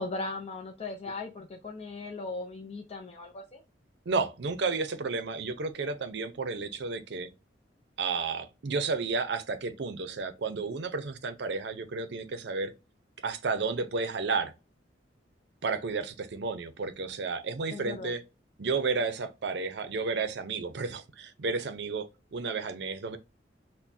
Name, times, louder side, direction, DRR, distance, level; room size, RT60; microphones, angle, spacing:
voice 1, 0.0-3.6 17.7-18.1, left 3 dB, 35° left, 0.5 m, -38 dB
voice 2, 4.1-7.3 8.0-12.7 13.2-14.5 15.6-18.2 18.6-23.2, right 4 dB, 65° right, 0.6 m, -32 dB
6.0 x 2.1 x 2.6 m
head